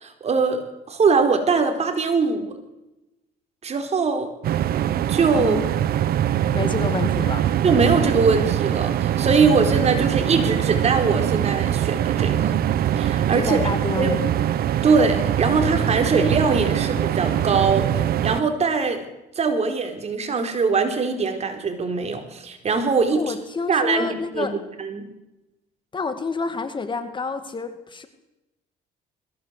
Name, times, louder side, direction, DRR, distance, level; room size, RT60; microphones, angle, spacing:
voice 1, 0.0-2.5 3.6-4.3 5.1-5.6 7.6-12.5 13.0-13.7 13.9-14.2 14.8-17.9 18.2-19.1 19.4-23.3 23.7-24.5 24.8-25.1, right 4 dB, 40° right, 6 dB, 4.3 m, -22 dB
sound 1, 4.4-18.4, right 11 dB, 65° right, 1.2 m, -23 dB
voice 2, 5.3-5.7 6.5-7.4 13.3-14.3 23.1-24.6 25.9-28.1, left 4 dB, 30° left, 9 dB, 2.2 m, -28 dB
21.5 x 16.5 x 8.2 m, 0.95 s
cardioid pair, 110°, 17 cm